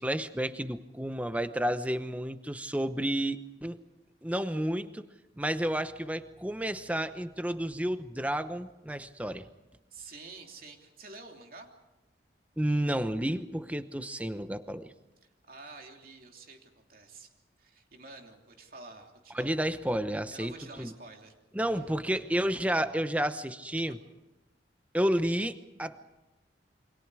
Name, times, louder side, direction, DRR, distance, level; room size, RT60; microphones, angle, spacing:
voice 1, 0.0-3.8 4.2-5.1 5.4-9.4 12.6-14.9 19.3-20.9 21.5-24.0 24.9-26.1, right 1 dB, 10° right, 10 dB, 0.9 m, -31 dB
voice 2, 9.9-11.7 15.5-17.3 17.6-19.6 20.3-21.3 21.7-22.2, right 3 dB, 50° right, 2 dB, 3.1 m, -49 dB
29.0 x 24.5 x 4.9 m, 1.0 s
head